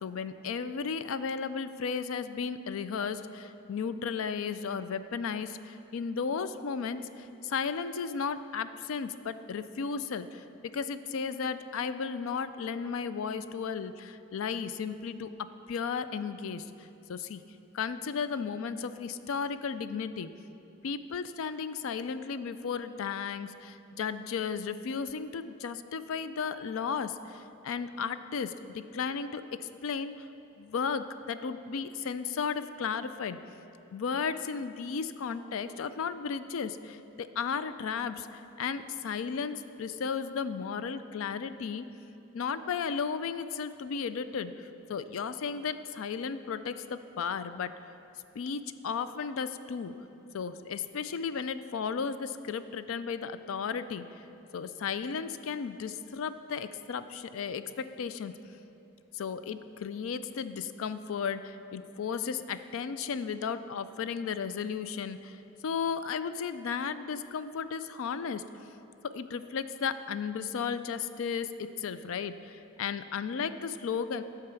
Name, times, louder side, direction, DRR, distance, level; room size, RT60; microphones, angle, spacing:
voice 1, 0.0-17.4 17.7-20.3 20.8-30.2 30.6-33.4 33.9-41.9 42.3-47.8 48.4-49.9 50.3-54.0 54.5-58.4 59.1-65.4 65.6-68.4 69.0-74.2, left 6 dB, 70° left, 12 dB, 0.4 m, -34 dB
10.0 x 4.7 x 6.8 m, 2.8 s
head